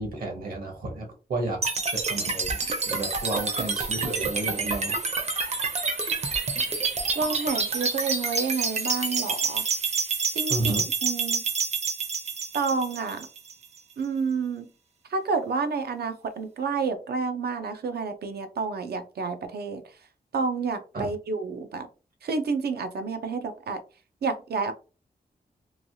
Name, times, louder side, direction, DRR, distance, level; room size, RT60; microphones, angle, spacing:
voice 1, 0.0-1.6 1.9-2.6 2.9-5.0 10.5-10.8 20.9-21.1, right 2 dB, 65° right, 2 dB, 0.9 m, -31 dB
sound 1, 1.6-13.6, right 4 dB, 45° right, 0.6 m, -28 dB
voice 2, 7.2-9.6 10.3-10.7 11.0-11.4 12.5-13.3 14.0-14.7 15.1-19.8 20.3-21.9 22.2-23.8 24.2-24.7, right 4 dB, 90° right, 8 dB, 0.5 m, -29 dB
3.1 x 2.3 x 2.6 m, 0.33 s
wide cardioid pair, 165°, 16 cm